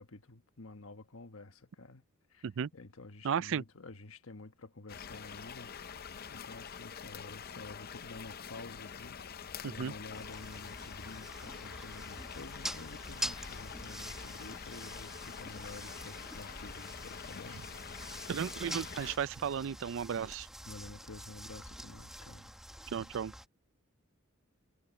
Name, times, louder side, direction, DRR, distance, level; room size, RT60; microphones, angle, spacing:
voice 1, 0.0-2.0 2.3-2.4 2.7-5.7 6.3-17.6 20.6-22.5, left 2 dB, 75° left, 1.3 m, -50 dB
voice 2, 3.2-3.6 9.6-9.9 18.3-20.5 22.9-23.3, right 7 dB, 65° right, 0.4 m, -34 dB
sound 1, 4.9-19.2, left 7 dB, 45° left, 0.6 m, -46 dB
sound 2, 10.1-23.5, equal, ahead, 1.3 m, -45 dB
head